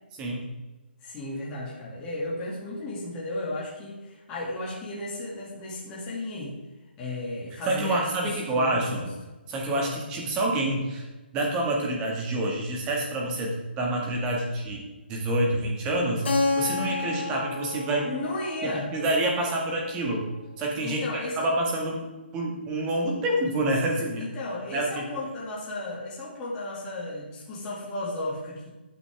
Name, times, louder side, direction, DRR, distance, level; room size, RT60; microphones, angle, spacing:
voice 1, 1.0-6.6 7.0-9.1 9.7-10.0 18.0-18.9 20.8-21.5 24.1-28.7, left 2 dB, 15° left, -6 dB, 2.6 m, -34 dB
voice 2, 7.6-9.0 9.5-11.1 11.3-18.1 18.9-20.3 20.6-21.0 21.4-24.2 24.7-25.0, right 1 dB, 15° right, -1 dB, 1.9 m, -27 dB
Keyboard (musical), 16.2-20.8, left 3 dB, 75° left, 2.4 m, -31 dB
14.5 x 8.4 x 3.6 m, 1.2 s
hypercardioid pair, 170°, 6 cm